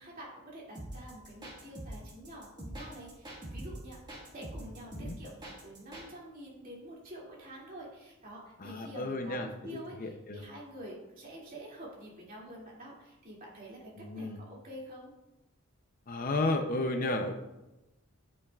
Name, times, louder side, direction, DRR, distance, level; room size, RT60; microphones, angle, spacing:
voice 1, 0.0-4.0 4.3-15.1, right 1 dB, 40° right, -4 dB, 2.4 m, -47 dB
sound 1, 0.7-6.1, right 1 dB, 20° right, 1.7 m, -44 dB
voice 2, 8.6-10.4 14.0-14.4 16.1-17.3, left 2 dB, 40° left, 6 dB, 0.6 m, -33 dB
8.6 x 8.6 x 2.4 m, 1.0 s
head